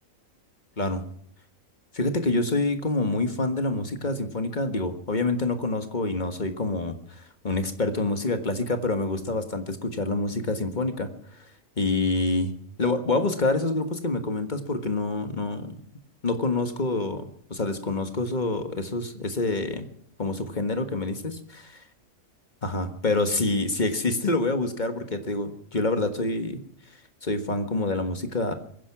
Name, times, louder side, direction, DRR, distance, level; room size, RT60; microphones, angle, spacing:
voice 1, 1.9-11.1 11.8-15.8 16.2-19.9 20.2-21.7 22.6-26.6 27.2-28.5, left 2 dB, 35° left, 8 dB, 1.6 m, -27 dB
23.0 x 10.5 x 6.0 m, 0.69 s
omnidirectional pair, 1.4 m